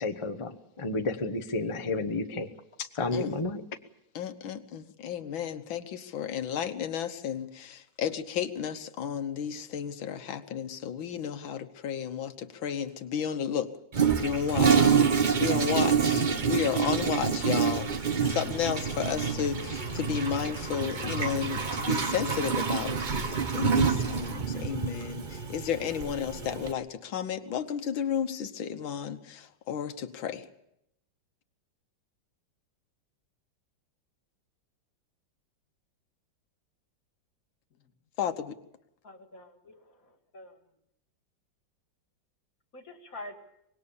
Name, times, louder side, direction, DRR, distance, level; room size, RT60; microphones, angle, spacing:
voice 1, 0.0-2.5 2.8-3.6, left 3 dB, 20° left, 6 dB, 0.9 m, -31 dB
voice 2, 4.2-13.7 14.2-15.0 15.4-30.5 38.2-38.6, left 8 dB, 85° left, 9 dB, 1.9 m, -33 dB
Toilet flush, 13.9-26.7, right 6 dB, 35° right, 0.9 m, -27 dB
voice 3, 39.0-40.5 42.7-43.4, left 1 dB, 45° left, 5 dB, 2.7 m, -46 dB
25.0 x 20.5 x 7.1 m, 0.78 s
omnidirectional pair, 2.1 m